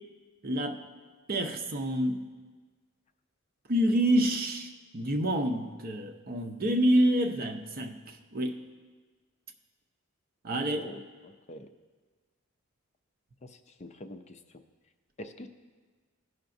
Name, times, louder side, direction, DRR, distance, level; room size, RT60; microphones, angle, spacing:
voice 1, 0.4-0.8 1.3-2.2 3.7-8.6 10.4-10.9, right 1 dB, 45° right, 4 dB, 0.7 m, -27 dB
voice 2, 13.4-14.4 15.2-15.5, left 1 dB, 30° left, 7 dB, 0.4 m, -44 dB
17.0 x 5.7 x 2.6 m, 1.4 s
head